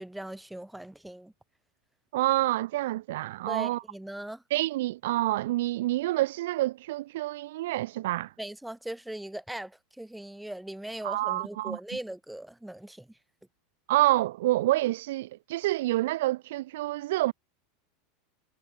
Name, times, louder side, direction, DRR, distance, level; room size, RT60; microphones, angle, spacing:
voice 1, 0.0-1.3 3.5-4.4 8.4-13.1, right 1 dB, 5° right, 1.0 m, -39 dB
voice 2, 2.1-3.8 4.5-8.3 11.0-11.8 13.9-17.3, right 17 dB, 70° right, 0.8 m, -27 dB
supercardioid pair, 165°, 0 cm